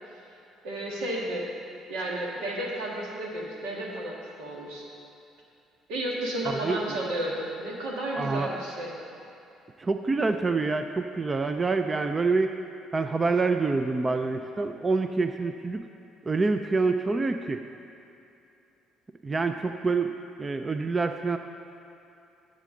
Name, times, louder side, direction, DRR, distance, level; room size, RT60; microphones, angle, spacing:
voice 1, 0.6-1.5 1.9-4.8 5.9-9.0, right 1 dB, 85° right, -2 dB, 1.7 m, -32 dB
voice 2, 6.4-6.8 8.2-8.5 9.8-12.6 12.9-15.9 16.2-17.6 19.2-20.1 20.4-21.4, right 3 dB, 25° right, 7 dB, 0.4 m, -26 dB
11.5 x 7.5 x 3.8 m, 2.7 s
cardioid pair, 90°, 0 cm